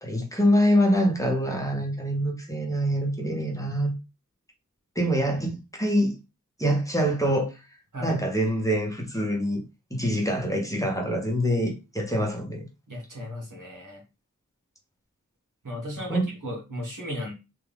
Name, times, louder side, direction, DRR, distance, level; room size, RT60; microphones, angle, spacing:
voice 1, 0.0-3.9 4.9-6.2 6.6-7.5 8.0-9.6 9.9-12.6 16.1-16.2, equal, 10° left, 1.1 m, -25 dB
voice 2, 7.9-8.2 12.9-14.0 15.6-17.3, equal, 75° right, 1.7 m, -35 dB
3.5 x 2.7 x 3.5 m
wide cardioid pair, 80°, 32 cm